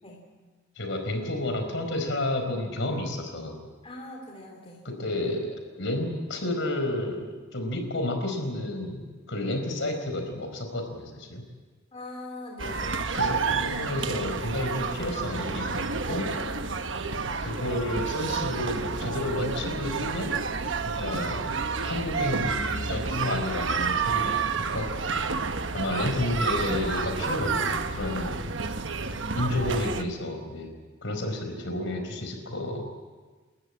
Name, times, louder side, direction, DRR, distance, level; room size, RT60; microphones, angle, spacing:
voice 1, 0.8-3.6 4.8-11.4 13.1-16.3 17.4-20.3 20.8-24.9 25.7-28.5 29.3-30.7 31.0-32.8, left 1 dB, 65° left, 5 dB, 4.6 m, -31 dB
voice 2, 3.8-4.8 11.9-13.0 17.0-17.3 31.8-32.1, left 2 dB, 30° left, 0 dB, 3.1 m, -42 dB
sound 1, 12.6-30.0, right 4 dB, 65° right, 1.2 m, -30 dB
29.0 x 13.5 x 8.8 m, 1.4 s
head